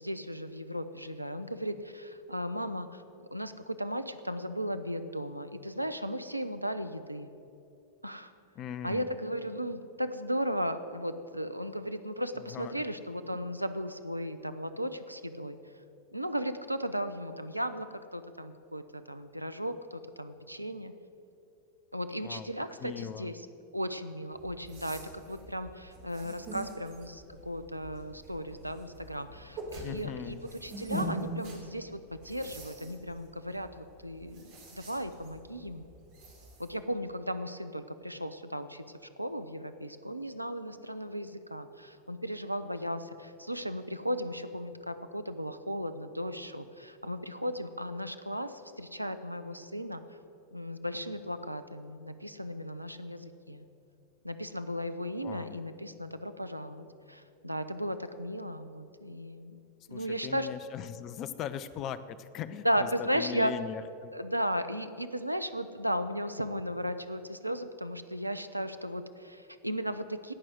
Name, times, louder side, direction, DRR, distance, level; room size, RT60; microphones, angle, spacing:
voice 1, 0.0-3.0 3.3-7.3 8.0-8.3 8.8-15.6 16.1-20.9 21.9-23.4 23.7-30.4 30.6-35.9 36.6-38.8 39.2-50.0 50.5-53.6 54.2-59.6 59.9-60.5 62.6-63.5 64.1-70.3, equal, 90° right, 11 dB, 0.6 m, -36 dB
voice 2, 8.6-9.2 12.5-12.8 22.2-22.5 22.8-23.3 29.7-30.4 55.2-55.6 59.9-64.1, left 9 dB, 35° left, 14 dB, 0.6 m, -40 dB
sound 1, 24.3-36.7, right 1 dB, 50° right, 2.9 m, -44 dB
17.5 x 6.2 x 7.9 m, 2.7 s
figure-of-eight pair, 90°, 0 cm